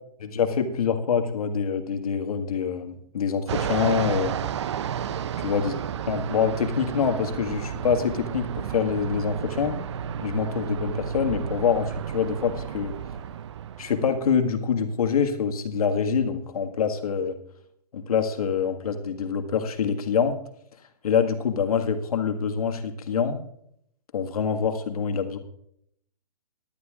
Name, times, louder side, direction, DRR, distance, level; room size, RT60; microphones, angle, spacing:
voice 1, 0.2-4.4 5.4-5.7 6.1-9.7 10.2-12.9 13.8-17.3 17.9-20.3 21.0-23.4 24.1-25.4, left 6 dB, 60° left, 6 dB, 1.7 m, -25 dB
Fixed-wing aircraft airplane, 3.5-14.3, right 8 dB, 45° right, 0.5 m, -32 dB
19.0 x 11.0 x 2.4 m, 0.69 s
hypercardioid pair, 160°, 21 cm